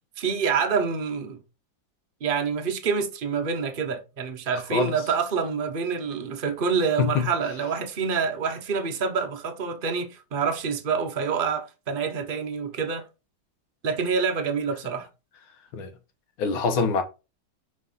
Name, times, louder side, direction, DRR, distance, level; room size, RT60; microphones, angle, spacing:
voice 1, 0.2-1.4 2.2-13.1 13.8-15.1, right 5 dB, 65° right, 0.5 m, -27 dB
voice 2, 16.4-17.0, left 5 dB, 90° left, 1.9 m, -24 dB
5.3 x 5.3 x 3.9 m
omnidirectional pair, 2.2 m